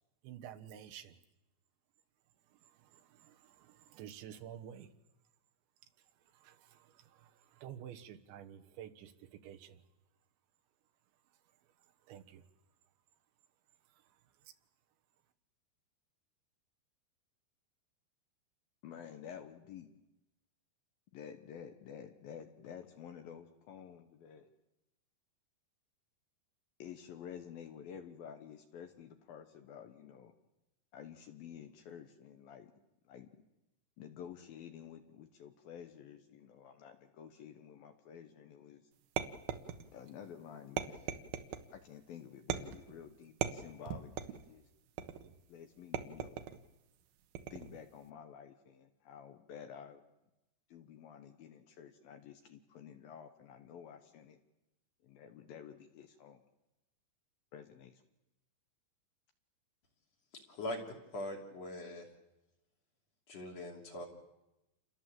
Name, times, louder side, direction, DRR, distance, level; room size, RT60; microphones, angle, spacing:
voice 1, 0.2-1.2 2.5-4.9 6.3-9.8 12.1-12.5 13.9-14.2 14.4-14.5, right 10 dB, 90° right, 6 dB, 3.7 m, -51 dB
voice 2, 18.8-19.9 21.1-24.5 26.8-30.3 30.9-32.7 33.1-33.3 34.0-38.8 39.9-41.2 41.7-44.6 45.5-46.4 47.5-50.0 50.7-54.4 55.0-56.4 57.5-57.9, left 8 dB, 65° left, 7 dB, 2.6 m, -51 dB
sound 1, 39.2-40.1 40.8-41.7 42.5-42.9 43.4-44.5 45.0-45.4 45.9-46.6 47.4-47.8, right 9 dB, 70° right, 2.7 m, -39 dB
voice 3, 61.1-62.0 63.3-64.1, left 1 dB, 40° left, 1 dB, 3.5 m, -41 dB
28.5 x 22.5 x 7.6 m, 0.97 s
omnidirectional pair, 5.1 m